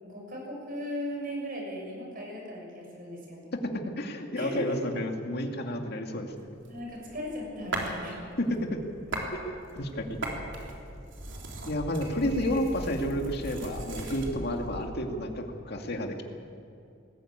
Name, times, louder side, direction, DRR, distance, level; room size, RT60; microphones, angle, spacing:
voice 1, 0.0-3.5 4.3-4.6 6.7-8.2, equal, 50° right, 0 dB, 6.5 m, -37 dB
voice 2, 4.0-6.6 8.4-8.8 9.2-10.2 11.7-16.2, equal, 55° left, 3 dB, 2.3 m, -31 dB
sound 1, 6.3-14.9, equal, 35° left, 3.4 m, -44 dB
sound 2, 6.7-8.0 8.5-9.3 9.7-14.3, right 2 dB, 70° right, 3.5 m, -39 dB
20.0 x 15.0 x 8.8 m, 2.7 s
head